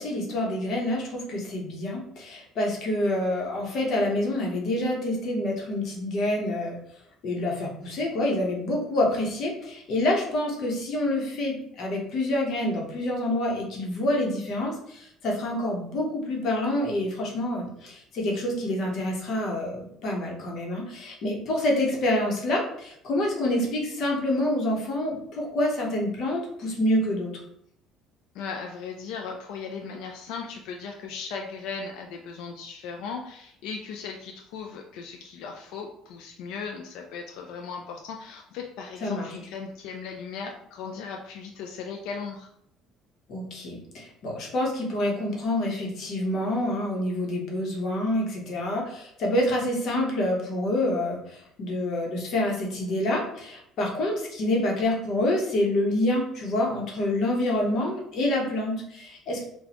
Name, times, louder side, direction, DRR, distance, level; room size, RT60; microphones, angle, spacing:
voice 1, 0.0-6.8 7.2-27.3 39.0-39.3 43.3-59.4, left 1 dB, 50° left, -1 dB, 0.9 m, -27 dB
voice 2, 28.3-42.5, left 5 dB, 75° left, 2 dB, 0.4 m, -37 dB
4.0 x 2.3 x 2.9 m, 0.72 s
cardioid pair, 155°, 0 cm